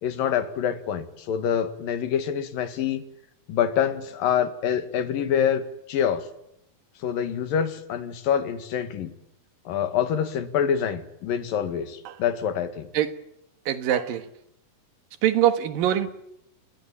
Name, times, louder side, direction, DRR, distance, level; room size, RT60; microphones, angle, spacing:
voice 1, 0.0-3.0 3.5-6.3 7.0-9.1 9.7-12.9, left 8 dB, 80° left, 10 dB, 3.5 m, -26 dB
voice 2, 13.7-14.3 15.2-16.1, right 11 dB, 80° right, 10 dB, 3.3 m, -23 dB
30.0 x 20.5 x 9.1 m, 0.81 s
omnidirectional pair, 4.0 m